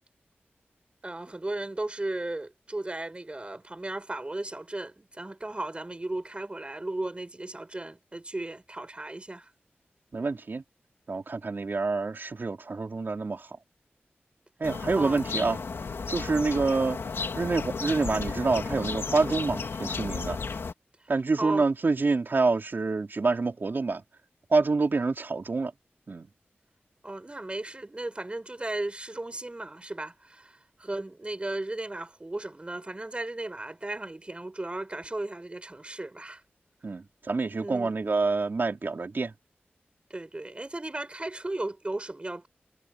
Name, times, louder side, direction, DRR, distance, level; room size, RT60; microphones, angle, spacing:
voice 1, 1.0-9.5 15.0-15.2 16.3-16.5 21.4-21.7 27.0-36.4 37.6-37.9 40.1-42.5, right 2 dB, 30° right, 5.0 m, -35 dB
voice 2, 10.1-10.6 11.1-13.5 14.6-15.6 16.1-17.0 17.3-20.4 21.1-24.0 24.5-25.7 26.1-26.3 36.8-39.3, right 3 dB, 60° right, 4.3 m, -27 dB
sound 1, 14.6-20.7, left 4 dB, 80° left, 3.1 m, -33 dB
wide cardioid pair, 70°, 4 cm